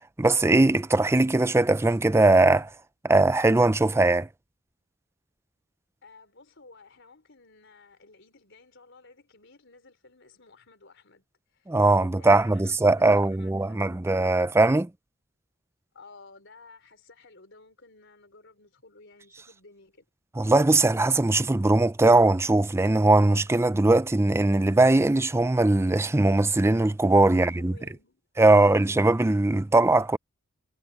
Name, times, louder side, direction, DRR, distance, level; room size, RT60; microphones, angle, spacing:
voice 1, 0.2-2.7 3.0-4.3 11.7-14.9 20.4-27.7 28.4-30.2, right 2 dB, 10° right, 0.4 m, -20 dB
voice 2, 6.0-11.2 11.5-14.2 15.9-20.1 27.3-28.2 28.5-28.9, left 3 dB, 60° left, 4.4 m, -54 dB
head